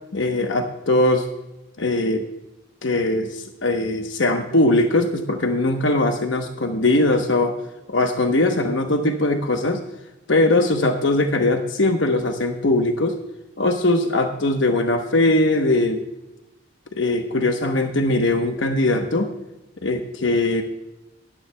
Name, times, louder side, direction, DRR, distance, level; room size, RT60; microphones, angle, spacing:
voice 1, 0.1-1.3 1.8-2.2 2.8-7.5 7.9-9.8 10.3-13.2 13.6-16.0 16.9-19.3 19.8-20.6, left 2 dB, 80° left, 5 dB, 1.0 m, -20 dB
19.0 x 11.5 x 2.2 m, 0.97 s
head